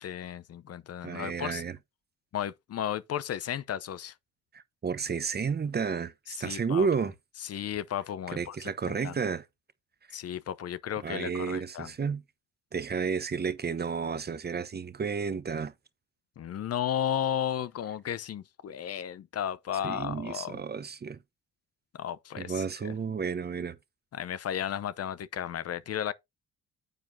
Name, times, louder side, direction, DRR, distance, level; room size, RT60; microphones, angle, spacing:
voice 1, 0.0-1.6 2.3-4.1 6.3-6.9 7.4-8.6 8.9-9.1 10.1-11.9 16.4-20.6 21.9-22.9 24.1-26.1, left 10 dB, 55° left, 0.8 m, -34 dB
voice 2, 1.0-1.8 4.5-7.1 8.3-9.4 11.0-12.2 12.7-15.7 19.8-21.2 22.4-23.8, right 6 dB, 35° right, 1.0 m, -31 dB
9.2 x 7.5 x 2.7 m
cardioid pair, 90°, 30 cm